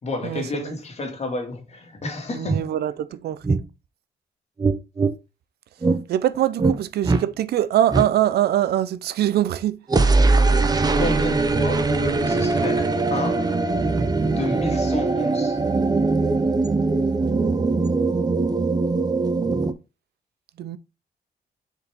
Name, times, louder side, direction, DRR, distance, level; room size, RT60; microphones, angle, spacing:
voice 1, 0.0-2.7 11.0-13.5 14.3-15.6, left 2 dB, 40° left, 2.2 m, -30 dB
sound 1, 2.0-2.1 2.5-2.6 3.4-3.6 4.6-5.1 5.8-6.0 6.6-6.8 7.0-7.2 7.9-8.1 9.9-19.7, right 3 dB, 25° right, 0.9 m, -21 dB
voice 2, 2.3-3.6 6.1-9.8 20.6-20.8, right 12 dB, 80° right, 0.6 m, -23 dB
6.7 x 4.7 x 3.6 m
cardioid pair, 90°, 16 cm